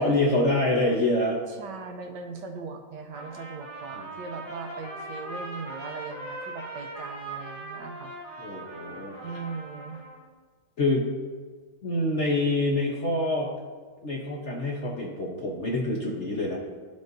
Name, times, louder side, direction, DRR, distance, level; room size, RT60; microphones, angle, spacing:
voice 1, 0.0-1.4 4.0-4.1 8.4-9.4 10.8-11.1 11.8-13.5 14.0-16.6, left 2 dB, 50° left, -2 dB, 0.9 m, -26 dB
voice 2, 1.5-8.1 9.2-10.0, right 4 dB, 70° right, 4 dB, 1.2 m, -39 dB
Trumpet, 3.1-10.3, right 2 dB, 20° left, 2.1 m, -40 dB
12.5 x 5.3 x 2.6 m, 1.5 s
omnidirectional pair, 2.1 m